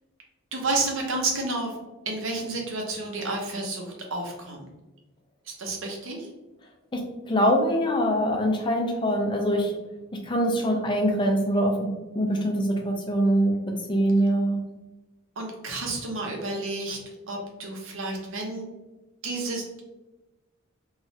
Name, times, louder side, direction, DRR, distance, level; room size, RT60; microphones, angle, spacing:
voice 1, 0.5-1.8 2.1-4.6 5.5-6.3 15.4-17.0 17.3-18.6 19.2-19.8, right 2 dB, 65° right, 0 dB, 0.7 m, -30 dB
voice 2, 6.9-9.7 10.2-11.9 12.1-13.6 13.9-14.6, equal, 20° left, 2 dB, 0.4 m, -23 dB
3.1 x 2.3 x 2.7 m, 1.1 s
head